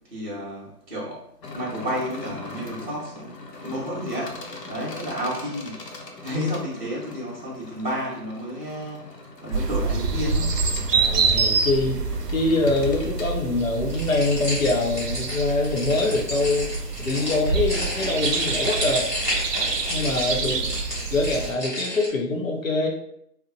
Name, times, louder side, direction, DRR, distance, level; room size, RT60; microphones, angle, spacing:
voice 1, 0.1-1.3 1.5-3.3 3.6-5.8 6.2-9.1 9.4-10.7 20.4-20.7, equal, 35° right, -12 dB, 0.7 m, -31 dB
sound 1, 1.4-13.3, left 3 dB, 90° left, 0.7 m, -41 dB
sound 2, 9.5-21.5, right 4 dB, 80° right, 0.6 m, -27 dB
voice 2, 10.9-12.0 12.3-16.7 17.0-19.1 19.9-20.8 21.1-22.9, left 2 dB, 55° left, 1 dB, 0.6 m, -24 dB
sound 3, 13.9-22.1, equal, 30° left, 1.0 m, -31 dB
2.8 x 2.0 x 2.6 m, 0.72 s
figure-of-eight pair, 170°, 48 cm